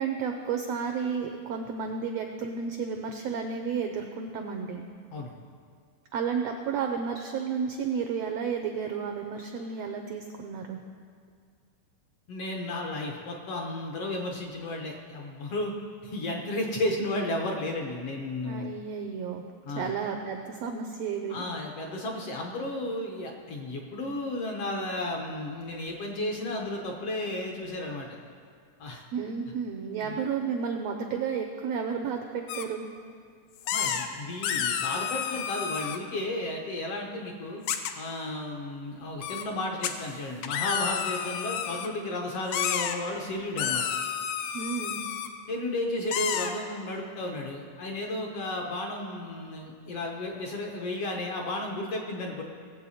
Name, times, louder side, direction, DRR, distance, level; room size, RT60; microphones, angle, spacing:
voice 1, 0.0-4.8 6.1-10.8 18.4-19.4 19.7-21.4 29.1-32.9 44.5-45.0, right 6 dB, 80° right, 4 dB, 1.4 m, -32 dB
voice 2, 12.3-15.7 16.0-18.7 19.6-19.9 21.3-28.1 28.8-29.0 30.0-30.2 33.7-37.6 38.0-43.8 45.5-52.4, left 1 dB, 65° left, 1 dB, 1.6 m, -33 dB
sound 1, 32.5-32.6 33.7-34.1 34.4-36.0 37.7-37.9 39.2-39.4 39.8-39.9 40.4-41.9 42.5-42.9 43.6-45.3 46.1-46.5, left 8 dB, 85° left, 2.3 m, -30 dB
19.0 x 7.9 x 4.2 m, 2.1 s
omnidirectional pair, 3.8 m